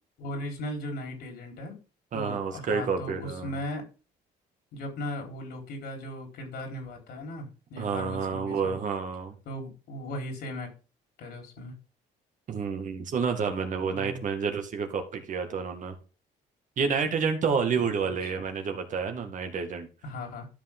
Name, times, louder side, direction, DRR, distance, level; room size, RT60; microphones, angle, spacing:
voice 1, 0.2-1.8 2.1-3.9 4.7-8.8 9.5-10.7 11.2-11.8 13.9-14.2 20.0-20.5, left 1 dB, 75° left, 4.0 m, -37 dB
voice 2, 2.1-3.5 7.8-9.4 12.5-16.0 16.8-19.9, right 5 dB, 50° right, 2.0 m, -29 dB
13.0 x 5.7 x 3.7 m
cardioid pair, 110°, 17 cm